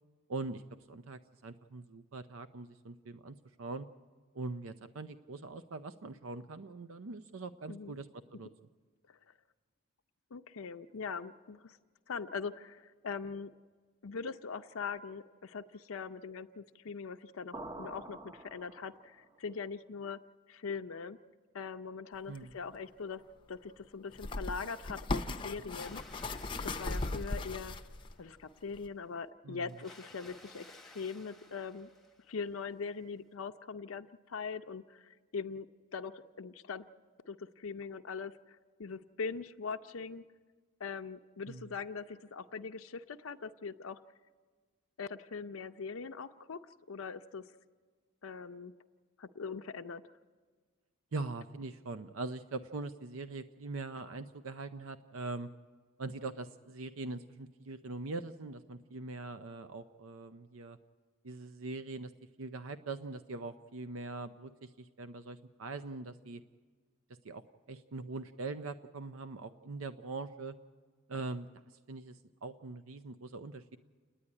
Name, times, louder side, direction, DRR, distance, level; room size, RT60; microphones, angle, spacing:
voice 1, 0.3-0.6 0.9-3.9 4.3-8.5 22.3-22.5 29.4-29.7 41.5-41.7 51.1-55.5 56.0-60.8 61.2-62.1 62.4-66.4 67.2-67.4 67.7-70.5 71.1-71.5 71.9-73.8, right 3 dB, 75° right, 11 dB, 0.6 m, -42 dB
voice 2, 10.3-11.8 12.1-13.5 14.0-20.2 20.5-21.2 21.5-23.2 23.5-26.3 26.6-27.8 28.2-31.9 32.3-35.7 35.9-36.9 37.3-38.3 38.8-40.2 40.8-44.0 45.0-46.6 46.9-47.5 48.2-48.7 49.2-50.0, left 5 dB, 80° left, 8 dB, 0.6 m, -41 dB
sound 1, 17.5-19.3, right 2 dB, 20° right, 0.6 m, -47 dB
sound 2, 22.3-22.4 24.1-28.1 28.7-28.9, left 2 dB, 25° left, 0.6 m, -37 dB
Water, 25.6-28.4 29.7-32.5, left 2 dB, ahead, 1.0 m, -57 dB
29.5 x 9.9 x 9.7 m, 1.5 s
head